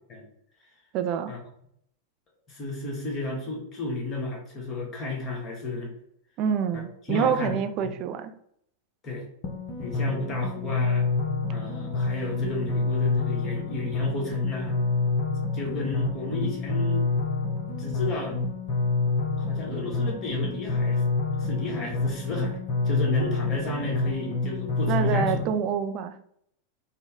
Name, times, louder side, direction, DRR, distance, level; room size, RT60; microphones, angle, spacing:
voice 1, 0.9-1.3 6.4-8.3 24.9-26.4, right 7 dB, 40° right, 8 dB, 0.4 m, -27 dB
voice 2, 2.5-5.9 6.7-6.8 7.1-7.9 9.0-9.3 9.8-11.1 11.5-14.7 15.5-17.0 17.8-18.4 19.4-21.0 21.4-22.6 22.8-25.5, left 2 dB, 25° left, -2 dB, 1.3 m, -32 dB
sound 1, 9.4-25.4, left 3 dB, 45° left, 0.8 m, -27 dB
4.1 x 2.1 x 3.4 m, 0.70 s
figure-of-eight pair, 90°, 0 cm